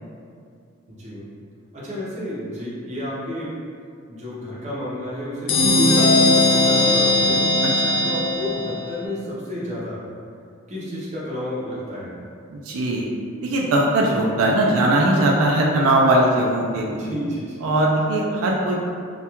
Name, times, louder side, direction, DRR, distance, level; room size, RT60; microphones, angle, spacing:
voice 1, 0.9-1.3 1.7-3.5 4.1-7.5 8.0-10.0 10.7-12.2 17.0-17.6, left 1 dB, 35° right, -7 dB, 0.6 m, -31 dB
sound 1, 5.5-9.0, left 1 dB, 65° left, 0.3 m, -18 dB
voice 2, 7.6-8.0 12.5-13.1 13.4-17.0 17.6-18.8, right 1 dB, 90° right, -1 dB, 0.3 m, -20 dB
2.3 x 2.1 x 2.9 m, 2.3 s
head